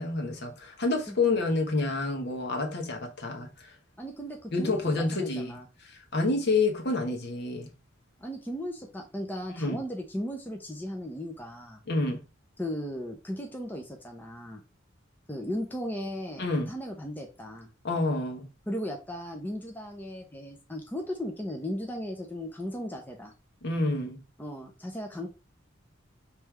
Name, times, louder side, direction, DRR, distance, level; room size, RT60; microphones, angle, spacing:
voice 1, 0.0-3.7 4.5-5.6 5.8-7.7 9.6-9.8 11.9-12.2 16.4-16.7 17.8-18.5 23.6-24.2, left 3 dB, 60° left, 1.2 m, -28 dB
voice 2, 4.0-5.6 8.2-11.8 12.6-14.6 15.3-17.7 18.7-23.3 24.4-25.3, equal, 10° left, 0.7 m, -36 dB
3.3 x 3.3 x 4.6 m
head